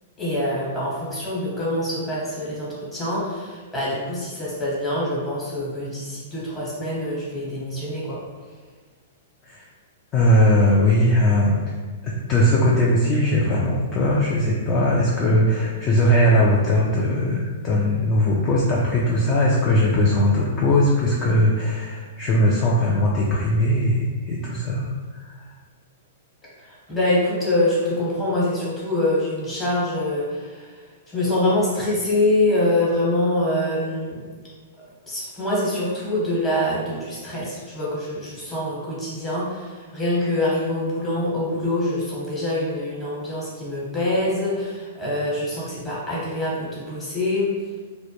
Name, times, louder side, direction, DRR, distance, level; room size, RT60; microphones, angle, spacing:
voice 1, 0.2-8.2 10.7-10.8 26.6-30.8 31.1-34.2 35.1-47.5, left 1 dB, 15° left, -7 dB, 1.0 m, -25 dB
voice 2, 10.1-11.6 12.0-25.2, left 1 dB, 35° left, -4 dB, 0.4 m, -19 dB
2.1 x 2.0 x 2.8 m, 1.4 s
hypercardioid pair, 115°, 0 cm